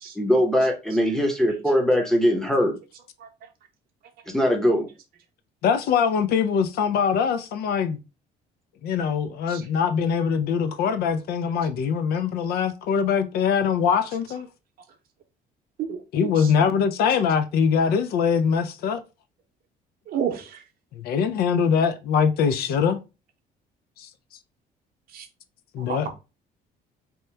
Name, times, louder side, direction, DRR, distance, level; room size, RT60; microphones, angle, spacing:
voice 1, 0.2-2.7 4.3-4.9, equal, 5° left, 0.7 m, -21 dB
voice 2, 5.6-8.0 8.8-14.5 16.1-19.0 20.9-23.0 24.0-24.1 25.7-26.1, left 6 dB, 65° left, 0.4 m, -23 dB
voice 3, 15.8-16.5 20.1-20.6 25.1-25.3 25.8-26.0, right 8 dB, 60° right, 0.7 m, -31 dB
2.9 x 2.1 x 3.2 m
cardioid pair, 110°, 17 cm